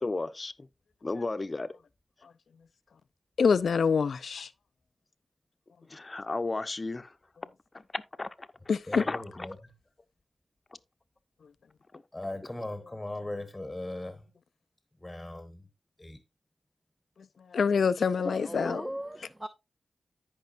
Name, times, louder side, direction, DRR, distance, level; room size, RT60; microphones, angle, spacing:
voice 1, 0.0-0.7 1.0-1.8 5.9-7.1 7.7-8.5 8.9-9.2 18.3-18.9, left 3 dB, 40° left, 0.8 m, -34 dB
voice 2, 3.4-4.5 8.7-9.0 17.5-18.8, left 6 dB, 80° left, 0.5 m, -25 dB
voice 3, 8.9-9.5 12.1-14.2 15.0-15.6 16.0-16.2, left 1 dB, 20° left, 1.2 m, -38 dB
voice 4, 18.4-19.5, right 1 dB, 20° right, 0.6 m, -38 dB
14.5 x 5.4 x 2.6 m
cardioid pair, 50°, 0 cm